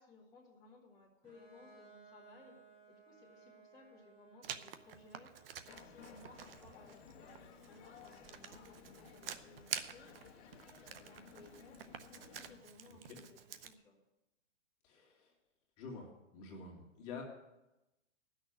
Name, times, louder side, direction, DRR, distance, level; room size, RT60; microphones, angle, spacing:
voice 1, 0.0-2.5 2.9-13.4 13.6-14.0, left 3 dB, 10° left, -7 dB, 2.1 m, -61 dB
Bowed string instrument, 1.2-6.8, right 5 dB, 20° right, 3.9 m, -62 dB
Writing, 4.4-13.7, right 8 dB, 50° right, 0.8 m, -49 dB
sound 1, 5.7-12.6, left 7 dB, 55° left, 1.6 m, -57 dB
voice 2, 14.8-15.3 15.8-16.1 16.3-17.2, left 4 dB, 30° left, -1 dB, 2.2 m, -48 dB
11.0 x 6.6 x 9.3 m, 0.95 s
hypercardioid pair, 155°, 37 cm